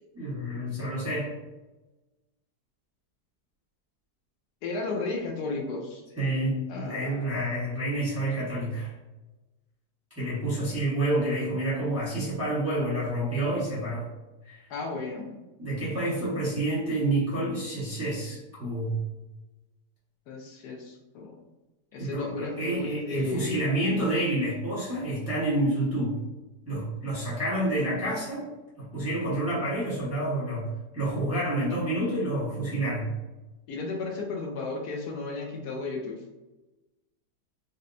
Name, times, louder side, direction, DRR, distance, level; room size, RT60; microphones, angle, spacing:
voice 1, 0.1-1.3 6.2-8.9 10.2-14.1 14.4-14.6 15.6-19.0 22.0-26.2 26.7-28.5 28.8-33.1, right 1 dB, 10° right, -10 dB, 0.8 m, -28 dB
voice 2, 4.6-6.0 6.7-7.3 14.7-15.4 20.3-21.3 21.9-23.7 33.7-36.2, left 3 dB, 75° left, 0 dB, 1.1 m, -34 dB
4.0 x 2.2 x 2.5 m, 1.1 s
omnidirectional pair, 1.8 m